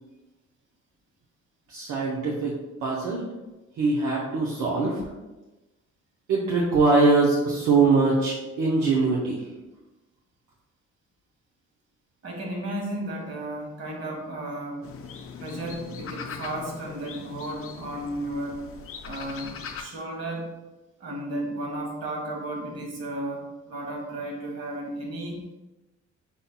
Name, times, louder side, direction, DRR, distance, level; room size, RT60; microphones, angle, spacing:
voice 1, 1.7-3.2 3.8-5.1 6.3-9.5, right 3 dB, 75° right, -4 dB, 0.9 m, -22 dB
voice 2, 12.2-14.9 15.4-18.6 19.0-20.6 21.0-25.4, right 1 dB, 55° right, 0 dB, 1.5 m, -34 dB
sound 1, 14.8-19.8, left 6 dB, 50° left, 0.5 m, -40 dB
5.4 x 4.1 x 2.2 m, 1.1 s
cardioid pair, 90°, 30 cm